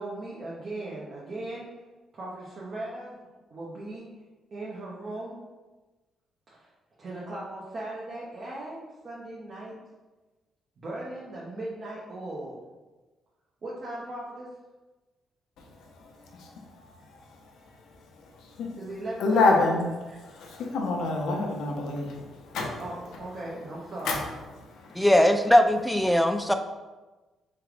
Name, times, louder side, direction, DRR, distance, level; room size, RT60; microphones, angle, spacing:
voice 1, 0.0-1.7 2.1-4.1 4.5-5.3 6.5-6.7 7.0-9.7 10.8-12.6 13.6-14.5 18.8-19.6 20.1-20.2 22.8-24.2 25.2-25.3, right 2 dB, 45° right, -6 dB, 0.9 m, -38 dB
voice 2, 19.2-19.8 20.2-22.8 24.0-24.2, left 3 dB, 80° left, 0 dB, 0.8 m, -26 dB
voice 3, 25.0-26.5, left 1 dB, ahead, 7 dB, 0.4 m, -20 dB
3.6 x 3.4 x 3.3 m, 1.2 s
cardioid pair, 90°, 0 cm